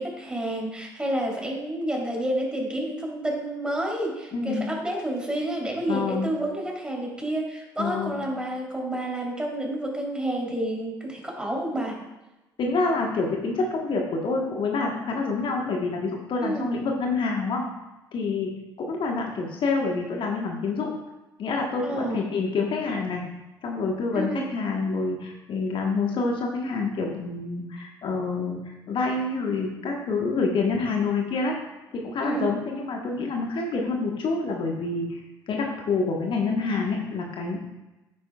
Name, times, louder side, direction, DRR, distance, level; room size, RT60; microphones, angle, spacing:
voice 1, 0.0-12.0 16.4-16.7 21.8-22.2 24.1-24.5 32.2-32.5, right 1 dB, 10° right, -2 dB, 3.4 m, -29 dB
voice 2, 4.3-4.7 5.9-6.3 7.8-8.2 12.6-17.6 18.1-18.5 18.8-20.9 21.4-23.2 23.6-31.6 31.9-35.2 35.5-37.6, left 4 dB, 45° left, 1 dB, 1.3 m, -27 dB
10.5 x 9.3 x 2.4 m, 1.0 s
figure-of-eight pair, 50°, 11 cm